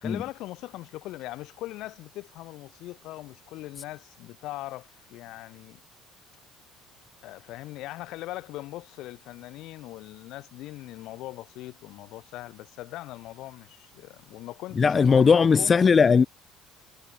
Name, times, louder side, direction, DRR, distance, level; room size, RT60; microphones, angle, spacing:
voice 1, 0.0-5.8 7.2-15.7, left 17 dB, 70° left, 2.2 m, -40 dB
voice 2, 14.8-16.3, left 5 dB, 25° left, 0.3 m, -18 dB
cardioid pair, 120°, 0 cm